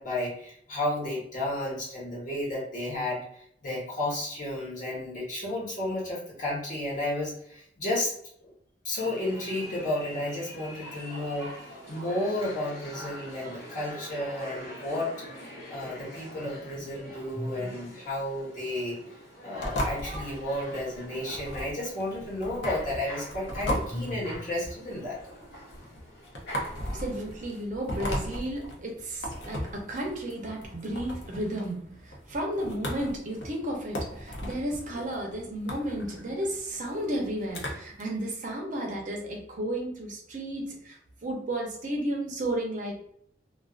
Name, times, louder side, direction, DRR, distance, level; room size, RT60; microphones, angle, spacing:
voice 1, 0.0-8.1 8.8-11.6 11.9-15.1 15.7-19.0 19.4-25.2, left 1 dB, 50° left, -5 dB, 1.1 m, -32 dB
sound 1, 8.9-27.6, equal, 65° left, 1.2 m, -44 dB
sound 2, 19.6-38.0, equal, 90° left, 0.6 m, -37 dB
voice 2, 26.7-43.0, right 1 dB, 45° right, 0 dB, 0.6 m, -33 dB
2.4 x 2.3 x 2.3 m, 0.67 s
head